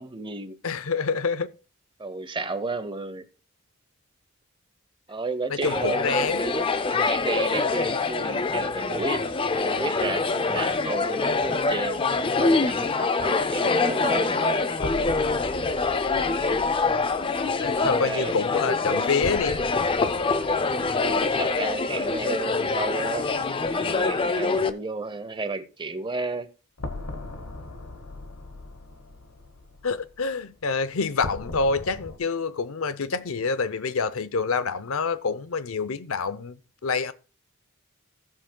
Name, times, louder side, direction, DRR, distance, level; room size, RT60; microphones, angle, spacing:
voice 1, 0.0-0.6 2.0-3.3 5.1-6.7 7.1-9.2 9.6-12.0 12.4-14.8 18.0-18.3 21.0-23.3 23.7-26.5, right 3 dB, 25° right, 0.7 m, -32 dB
voice 2, 0.6-1.5 5.5-6.4 17.6-19.6 29.8-37.1, left 4 dB, 70° left, 0.6 m, -27 dB
sound 1, 5.6-24.7, left 3 dB, 25° left, 0.4 m, -25 dB
sound 2, 14.8-22.6 22.8-22.9 26.8-32.2, left 2 dB, 90° left, 1.1 m, -40 dB
16.5 x 7.3 x 2.3 m
head